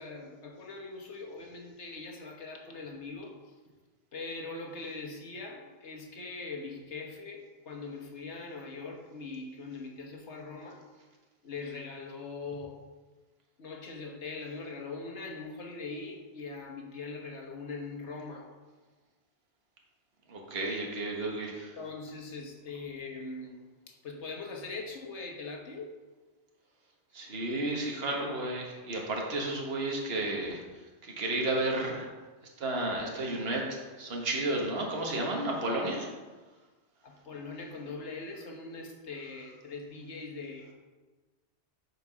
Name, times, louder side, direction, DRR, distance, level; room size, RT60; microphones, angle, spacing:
voice 1, 0.0-3.4 4.1-10.8 11.4-12.8 13.6-18.5 21.8-23.6 23.9-25.9 37.0-40.7, left 3 dB, 90° left, 2 dB, 1.5 m, -41 dB
voice 2, 20.3-21.7 27.1-30.6 31.0-32.1 32.6-33.7 34.0-36.1, right 2 dB, 60° right, -1 dB, 1.6 m, -32 dB
8.4 x 4.6 x 6.1 m, 1.3 s
omnidirectional pair, 1.1 m